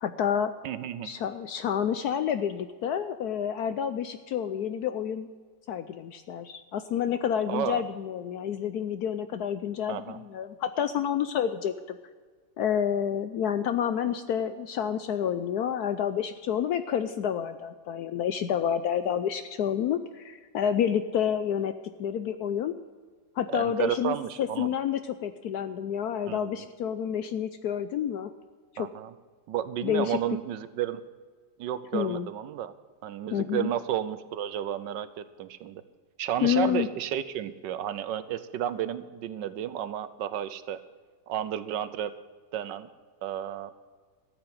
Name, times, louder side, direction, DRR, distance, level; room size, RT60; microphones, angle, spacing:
voice 1, 0.0-0.5 1.0-5.3 5.7-12.0 12.6-22.7 23.4-28.3 28.7-28.9 29.8-30.2 31.9-32.3 33.3-33.7 36.4-36.9, left 9 dB, 70° left, 11 dB, 0.9 m, -29 dB
voice 2, 0.6-1.1 7.5-7.8 9.9-10.2 23.5-24.7 26.3-26.6 28.8-29.1 29.5-31.1 31.6-32.7 33.0-35.8 36.2-40.8 41.3-42.2 42.5-42.9 43.2-43.7, right 10 dB, 75° right, 14 dB, 1.3 m, -32 dB
13.5 x 8.3 x 7.6 m, 1.6 s
omnidirectional pair, 2.1 m